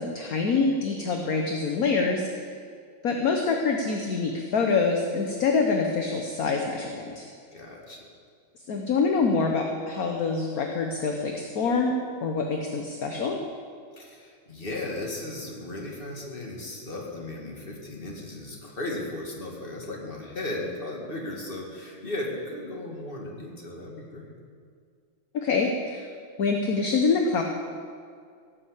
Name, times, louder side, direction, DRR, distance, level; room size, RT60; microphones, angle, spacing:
voice 1, 0.0-2.4 3.0-7.2 8.7-11.9 12.2-13.4 25.3-26.1 26.4-27.4, left 4 dB, 55° left, 2 dB, 1.4 m, -25 dB
voice 2, 7.5-8.1 14.0-24.3, left 2 dB, 25° left, -1 dB, 2.3 m, -36 dB
17.0 x 7.7 x 8.2 m, 2.2 s
omnidirectional pair, 2.2 m